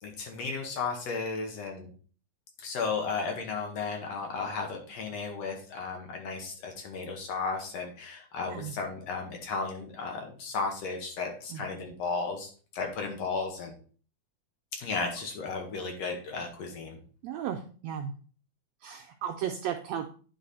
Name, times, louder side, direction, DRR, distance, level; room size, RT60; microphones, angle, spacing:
voice 1, 0.0-1.9 2.6-13.7 14.7-17.0, left 4 dB, 65° left, 2 dB, 2.1 m, -34 dB
voice 2, 17.2-18.1 18.8-20.1, right 9 dB, 80° right, 4 dB, 1.5 m, -35 dB
9.6 x 4.1 x 4.1 m, 0.41 s
omnidirectional pair, 3.6 m